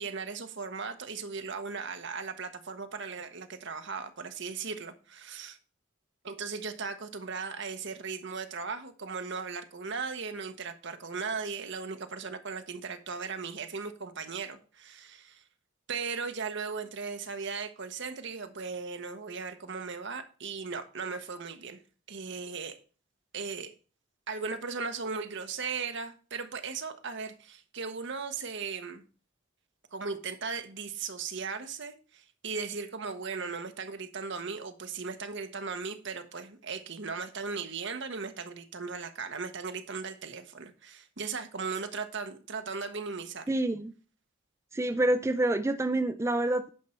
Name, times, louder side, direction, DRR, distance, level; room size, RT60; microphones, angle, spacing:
voice 1, 0.0-5.6 6.2-15.4 15.9-21.8 22.1-22.8 23.3-23.7 24.3-29.0 29.9-43.4, right 5 dB, 55° right, 1.0 m, -37 dB
voice 2, 43.5-43.9 44.7-46.7, right 1 dB, 15° right, 0.4 m, -27 dB
10.0 x 5.5 x 4.4 m
head